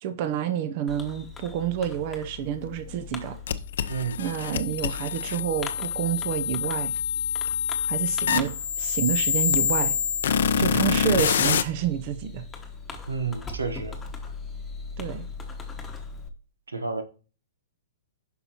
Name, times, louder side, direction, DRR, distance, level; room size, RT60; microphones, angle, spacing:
voice 1, 0.0-3.4 4.2-6.9 7.8-8.5 8.8-10.0 10.6-12.4 15.0-15.3, right 9 dB, 45° right, 0.7 m, -28 dB
Fireworks, 0.9-16.3, left 4 dB, 10° left, 1.1 m, -40 dB
sound 1, 3.5-11.6, left 8 dB, 65° left, 0.5 m, -26 dB
voice 2, 3.9-4.2 10.6-10.8 13.1-14.0 16.7-17.0, right 5 dB, 85° right, 0.9 m, -30 dB
9.4 x 5.6 x 2.9 m
hypercardioid pair, 120°, 0 cm